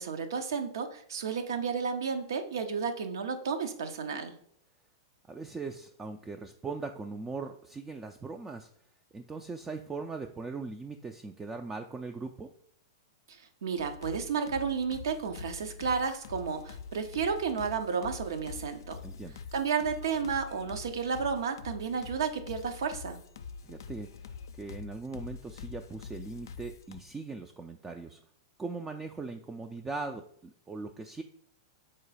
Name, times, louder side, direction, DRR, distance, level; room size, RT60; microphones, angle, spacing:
voice 1, 0.0-4.3 13.6-19.0 19.5-23.2, right 6 dB, 75° right, 7 dB, 0.7 m, -32 dB
voice 2, 5.3-8.7 9.1-12.5 19.0-19.4 23.6-24.1 24.6-28.2 28.6-31.2, right 4 dB, 15° right, 4 dB, 0.3 m, -40 dB
sound 1, 13.8-27.0, left 6 dB, 75° left, 0.4 m, -45 dB
3.9 x 2.9 x 4.8 m, 0.62 s
hypercardioid pair, 115°, 2 cm